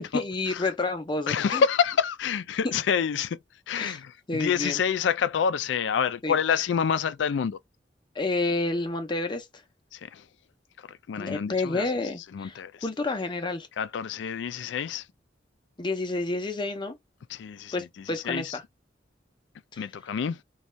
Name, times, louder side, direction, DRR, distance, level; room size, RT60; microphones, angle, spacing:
voice 1, 0.0-1.6 3.8-4.0 4.3-4.8 6.2-6.4 8.2-9.5 11.2-13.7 15.8-16.9 17.7-18.6 19.7-19.8, left 2 dB, 25° left, 0.5 m, -29 dB
voice 2, 1.3-3.4 3.7-7.6 9.9-10.2 10.9-11.9 12.3-12.7 13.8-15.0 17.3-17.9 18.2-18.6 19.8-20.4, left 7 dB, 75° left, 0.3 m, -27 dB
2.6 x 2.3 x 3.0 m
head